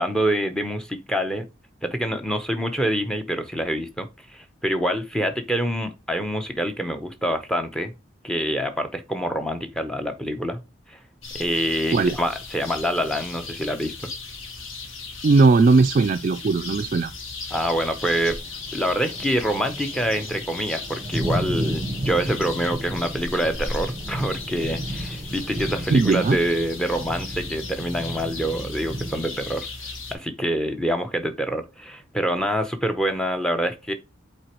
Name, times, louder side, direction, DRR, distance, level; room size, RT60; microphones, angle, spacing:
voice 1, 0.0-1.5 1.8-7.9 8.2-10.6 10.9-11.0 11.3-13.9 17.5-18.4 18.7-29.7 30.1-33.9, equal, 5° left, 0.7 m, -26 dB
sound 1, 11.2-30.2, left 3 dB, 75° left, 1.4 m, -36 dB
voice 2, 15.2-17.1 25.9-26.4, right 3 dB, 40° right, 0.3 m, -18 dB
sound 2, 17.9-29.5, right 1 dB, 25° right, 0.9 m, -33 dB
7.9 x 4.2 x 3.0 m
head